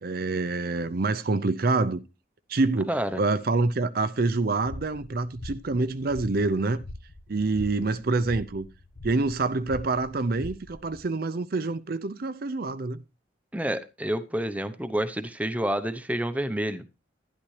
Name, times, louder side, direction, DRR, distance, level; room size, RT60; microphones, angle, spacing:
voice 1, 0.0-2.0 2.5-6.8 7.3-8.7 9.0-13.0, right 3 dB, 50° right, 0.5 m, -26 dB
voice 2, 2.9-3.2 13.5-16.8, right 1 dB, 5° right, 0.7 m, -29 dB
sound 1, 4.6-11.0, left 1 dB, 75° left, 1.3 m, -43 dB
11.5 x 11.0 x 3.2 m
head